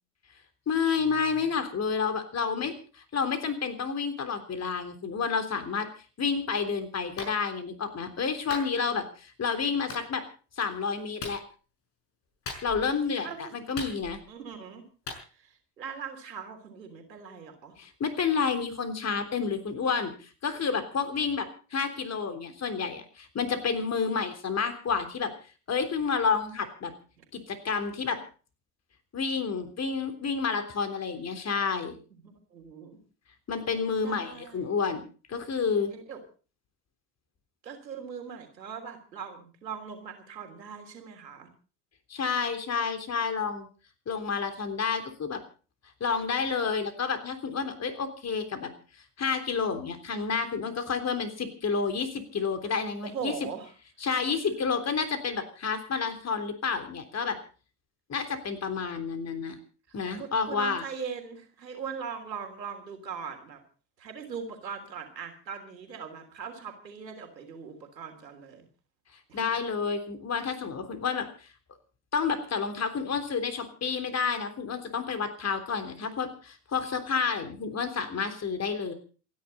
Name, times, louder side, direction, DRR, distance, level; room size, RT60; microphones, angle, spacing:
voice 1, 0.7-5.9 6.2-10.2 10.6-11.4 12.6-14.2 17.8-25.3 25.7-26.9 27.3-28.2 29.1-32.0 33.5-35.0 35.3-35.9 42.1-43.7 44.1-45.4 46.0-48.7 49.2-53.3 54.0-57.4 58.1-59.6 59.9-60.8 69.3-71.3 72.1-78.9, left 5 dB, 30° left, 8 dB, 3.4 m, -30 dB
Clapping, 7.2-7.4 8.5-8.7 9.9-10.0 11.2-11.4 12.5-12.9 13.8-14.3 15.1-15.2, left 4 dB, 50° left, 6.3 m, -38 dB
voice 2, 14.3-14.8 15.2-17.8 27.2-27.3 32.1-33.0 34.0-34.7 35.9-36.2 37.6-41.5 53.0-53.7 60.2-63.6 64.0-68.7 69.3-69.4, right 6 dB, 80° right, 6 dB, 3.4 m, -40 dB
27.5 x 10.5 x 4.2 m, 0.39 s
figure-of-eight pair, 60°, 49 cm